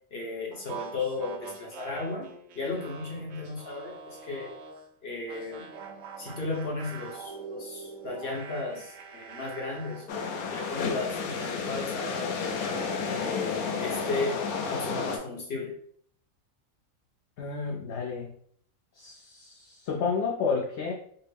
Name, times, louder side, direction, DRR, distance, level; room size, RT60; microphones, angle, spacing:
voice 1, 0.1-2.3 2.5-4.5 5.0-5.6 6.2-12.5 13.1-14.4 14.7-15.7, left 3 dB, 50° left, -2 dB, 1.1 m, -35 dB
sound 1, 0.5-4.9 5.3-10.1, right 5 dB, 70° right, 0.9 m, -44 dB
sound 2, 10.1-15.2, left 5 dB, 90° left, 1.1 m, -31 dB
voice 2, 17.4-18.3 18.9-20.9, left 5 dB, 65° left, -1 dB, 0.8 m, -31 dB
4.4 x 2.0 x 3.3 m, 0.62 s
omnidirectional pair, 1.4 m